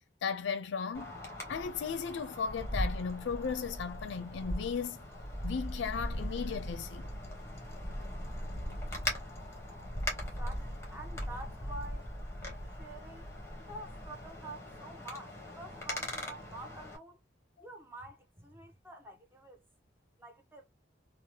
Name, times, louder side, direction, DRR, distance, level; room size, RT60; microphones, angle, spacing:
voice 1, 0.2-1.1 1.5-5.0 5.4-7.1 12.5-12.6, left 6 dB, 70° left, 0.4 m, -36 dB
Wind, 0.9-17.0, equal, 15° left, 0.9 m, -39 dB
voice 2, 10.4-12.1 12.6-13.3 13.7-17.2 17.6-19.7 20.2-20.7, right 2 dB, 10° right, 0.6 m, -48 dB
2.8 x 2.0 x 3.0 m
head